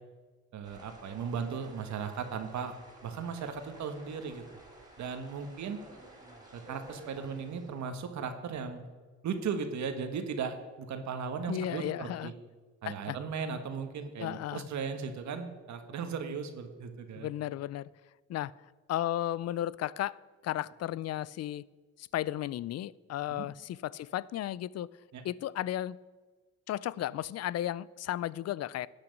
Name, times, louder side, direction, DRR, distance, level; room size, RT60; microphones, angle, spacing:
voice 1, 0.5-2.7 3.0-4.4 5.0-5.8 6.5-8.8 9.2-12.3 12.8-17.3 23.3-23.5 25.1-25.2, right 6 dB, 70° right, 7 dB, 1.4 m, -37 dB
sound 1, 0.6-8.0, right 1 dB, 15° right, 3.8 m, -53 dB
voice 2, 11.5-12.3 12.9-13.2 14.2-14.7 17.2-17.9 18.3-18.5 18.9-20.2 20.4-21.6 22.0-24.9 25.2-26.0 26.7-28.9, left 13 dB, 55° left, 22 dB, 0.5 m, -34 dB
12.0 x 8.9 x 5.2 m, 1.3 s
cardioid pair, 90°, 30 cm